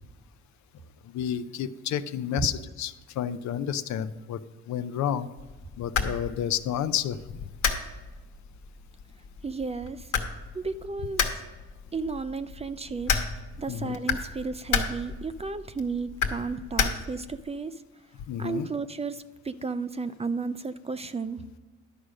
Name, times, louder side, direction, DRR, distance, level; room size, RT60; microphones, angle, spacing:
voice 1, 1.0-4.4 4.7-5.3 5.8-7.4 13.7-14.0 18.3-18.7, left 9 dB, 70° left, 13 dB, 0.6 m, -30 dB
sound 1, 5.4-17.4, left 6 dB, 85° left, 1.2 m, -33 dB
voice 2, 9.4-10.1 10.5-11.3 11.9-13.2 13.6-17.8 18.4-21.4, right 4 dB, 20° right, 13 dB, 0.4 m, -33 dB
11.5 x 4.9 x 6.4 m, 1.2 s
cardioid pair, 90°, 30 cm